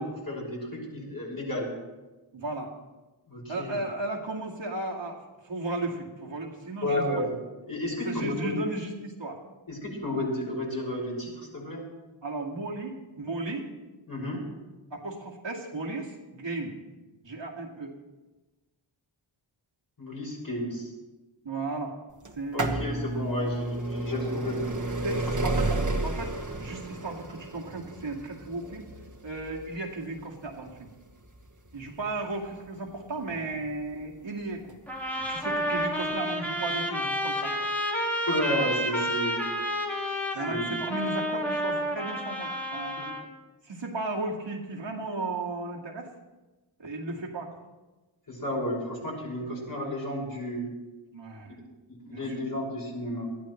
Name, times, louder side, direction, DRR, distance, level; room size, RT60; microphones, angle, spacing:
voice 1, 0.0-1.7 3.3-3.8 6.8-7.4 7.7-8.6 9.7-11.8 14.1-14.4 20.0-20.9 22.5-24.6 25.4-25.5 38.3-39.4 40.5-40.7 43.0-43.1 48.3-50.7 51.9-53.3, left 1 dB, 45° left, -3 dB, 6.0 m, -32 dB
voice 2, 2.3-2.7 3.5-7.2 8.0-9.4 12.2-13.7 14.9-16.8 17.2-17.9 21.4-21.9 22.3-23.0 25.0-25.7 26.0-28.9 29.2-30.9 31.7-34.8 35.2-37.7 40.3-43.0 43.6-46.1 46.8-47.6 51.1-51.6 52.1-52.2, right 2 dB, 65° right, -2 dB, 2.2 m, -35 dB
sound 1, 22.3-33.9 34.7-34.8 35.8-35.9 36.1-36.2, right 2 dB, 40° right, 1.7 m, -32 dB
sound 2, 34.9-43.3, equal, 5° left, 2.2 m, -30 dB
21.0 x 13.5 x 3.2 m, 1.2 s
wide cardioid pair, 80°, 48 cm